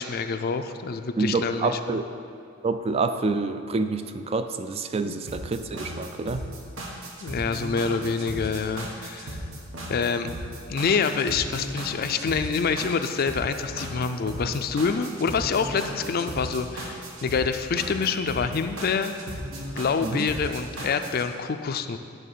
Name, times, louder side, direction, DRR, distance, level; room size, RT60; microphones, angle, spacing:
voice 1, 0.0-2.0 5.0-5.2 7.2-9.4 9.9-10.3 10.7-19.1 19.8-22.0, left 5 dB, 50° left, 9 dB, 0.4 m, -26 dB
voice 2, 1.2-2.0 2.6-6.5 20.0-20.3, right 3 dB, 30° right, 9 dB, 0.3 m, -27 dB
sound 1, 5.3-21.3, right 1 dB, 80° right, 1.3 m, -36 dB
9.9 x 4.0 x 6.8 m, 2.4 s
head